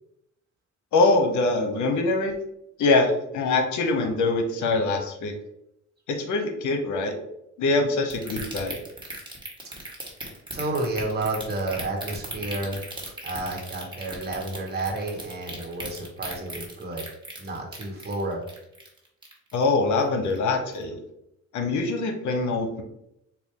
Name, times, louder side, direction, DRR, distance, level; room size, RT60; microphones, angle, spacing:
voice 1, 0.9-2.4 2.8-5.3 6.1-7.1 7.6-8.8 19.5-21.0 21.5-22.8, left 3 dB, 75° left, 5 dB, 0.8 m, -23 dB
sound 1, 8.1-19.7 20.0-20.4 20.7-20.8, right 2 dB, 15° right, 1.2 m, -37 dB
voice 2, 10.5-12.8 13.2-17.1 17.4-18.4, right 2 dB, 35° right, 0 dB, 1.2 m, -31 dB
4.3 x 2.3 x 3.6 m, 0.82 s
cardioid pair, 90°, 30 cm